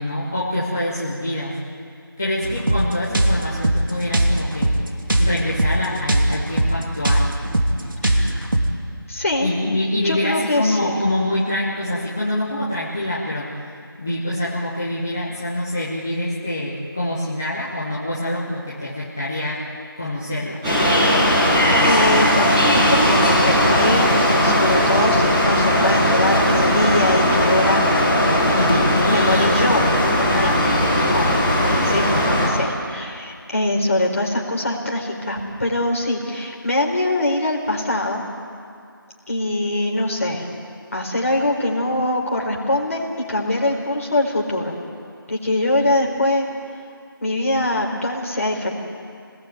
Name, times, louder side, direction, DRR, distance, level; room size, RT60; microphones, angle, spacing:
voice 1, 0.0-1.6 2.2-4.7 5.2-7.3 9.4-13.5 14.0-19.6 20.0-20.6 28.5-29.9 30.3-30.6 31.7-32.0, left 1 dB, 5° left, -8 dB, 0.7 m, -25 dB
sound 1, 2.4-8.7, right 1 dB, 65° right, 2.8 m, -20 dB
voice 2, 8.0-8.5 9.1-9.5 10.0-10.9 21.8-24.1 24.4-29.8 30.2-30.8 31.1-38.2 39.3-40.5 40.9-44.8 45.3-46.4 47.2-48.7, left 1 dB, 40° left, -1 dB, 4.5 m, -23 dB
sound 2, 20.6-32.5, equal, 10° right, 5.8 m, -18 dB
Gunshot gunfire / Fireworks, 24.7-30.9, left 1 dB, 70° left, 4.9 m, -28 dB
28.0 x 19.5 x 9.4 m, 2.3 s
figure-of-eight pair, 175°, 12 cm